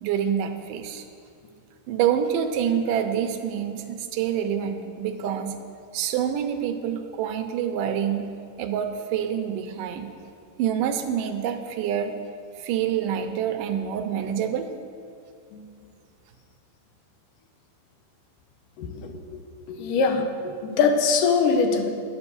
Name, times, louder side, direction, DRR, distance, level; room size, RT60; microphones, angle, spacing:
voice 1, 0.0-1.0 1.9-5.6 5.9-8.3 8.6-10.1 10.6-12.1 12.6-14.7, right 9 dB, 85° right, 7 dB, 2.3 m, -26 dB
voice 2, 18.8-19.4 19.7-21.9, left 4 dB, 80° left, 5 dB, 2.5 m, -23 dB
10.5 x 8.1 x 6.9 m, 2.3 s
omnidirectional pair, 3.8 m